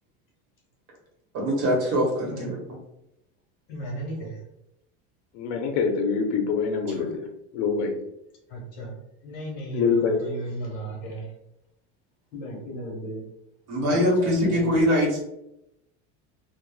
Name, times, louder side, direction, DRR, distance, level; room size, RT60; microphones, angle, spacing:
voice 1, 1.3-2.6 7.0-7.1 13.7-15.2, equal, 45° right, -1 dB, 0.9 m, -23 dB
voice 2, 2.2-2.6 3.7-4.4 8.5-11.3 12.3-13.2 13.8-14.9, right 1 dB, 50° left, -1 dB, 1.2 m, -36 dB
voice 3, 5.3-7.3 7.5-8.0 9.7-10.2, left 5 dB, 75° left, 4 dB, 0.6 m, -25 dB
3.0 x 2.1 x 2.3 m, 0.84 s
cardioid pair, 160°, 35 cm